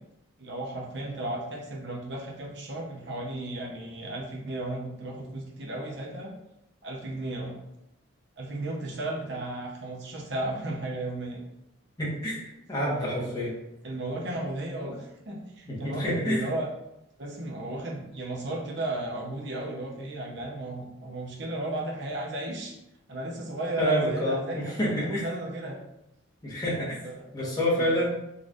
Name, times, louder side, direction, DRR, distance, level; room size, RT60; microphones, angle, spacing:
voice 1, 0.4-6.3 6.8-7.6 8.4-11.4 12.8-13.3 13.8-16.7 17.2-22.8 23.1-25.8 27.0-27.3 27.7-27.9, right 1 dB, 55° right, -2 dB, 0.8 m, -34 dB
voice 2, 12.0-13.5 15.7-16.4 23.8-25.3 26.4-27.0 27.3-28.1, equal, 20° left, -7 dB, 1.1 m, -28 dB
4.0 x 3.2 x 2.5 m, 0.88 s
head